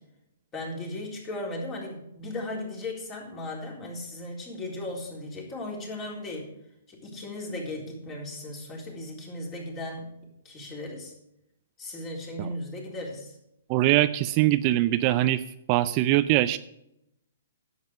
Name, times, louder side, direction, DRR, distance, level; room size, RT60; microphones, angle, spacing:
voice 1, 0.5-6.5 6.9-10.1 10.4-11.1 11.8-13.4, left 1 dB, 25° left, -2 dB, 3.8 m, -36 dB
voice 2, 13.7-15.4 15.7-16.6, right 15 dB, 35° right, 13 dB, 0.4 m, -22 dB
10.5 x 7.9 x 5.1 m, 0.81 s
hypercardioid pair, 130°, 0 cm